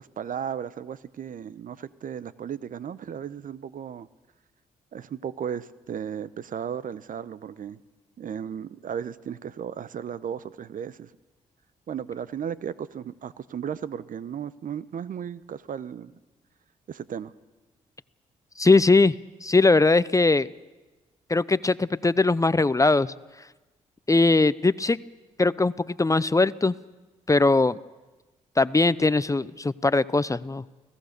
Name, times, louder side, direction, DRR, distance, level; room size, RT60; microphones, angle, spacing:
voice 1, 0.0-4.1 4.9-7.8 8.2-11.1 11.9-16.1 16.9-17.3, right 8 dB, 60° right, 17 dB, 0.9 m, -35 dB
voice 2, 18.6-19.1 19.4-20.5 21.3-23.1 24.1-25.0 25.4-26.7 27.3-27.8 28.6-30.6, left 3 dB, 20° left, 18 dB, 0.7 m, -20 dB
29.5 x 17.5 x 6.7 m, 1.2 s
supercardioid pair, 50°, 16 cm